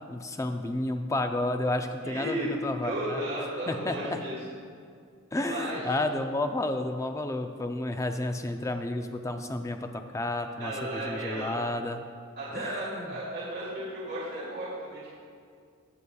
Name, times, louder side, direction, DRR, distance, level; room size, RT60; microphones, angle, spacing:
voice 1, 0.1-3.2 3.7-4.2 5.3-12.0 12.5-13.1, left 2 dB, 15° left, 6 dB, 0.4 m, -31 dB
voice 2, 2.0-2.5 2.8-4.4 5.3-5.9 10.6-11.6 12.4-15.1, right 1 dB, 55° right, -10 dB, 2.4 m, -34 dB
17.5 x 7.0 x 2.3 m, 2.2 s
head